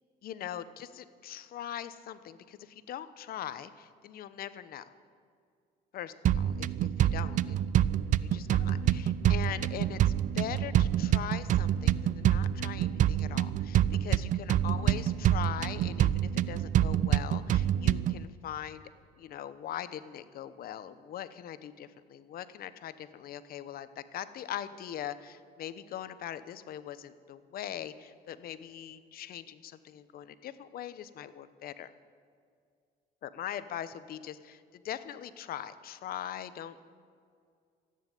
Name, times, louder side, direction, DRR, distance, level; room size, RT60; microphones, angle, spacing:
voice 1, 0.2-4.9 5.9-6.1 6.6-7.8 8.2-18.8 19.2-31.9 33.2-36.8, left 10 dB, 60° left, 14 dB, 0.9 m, -41 dB
sound 1, 6.3-18.3, right 11 dB, 50° right, 0.4 m, -27 dB
14.5 x 9.4 x 9.2 m, 2.2 s
cardioid pair, 110°, 17 cm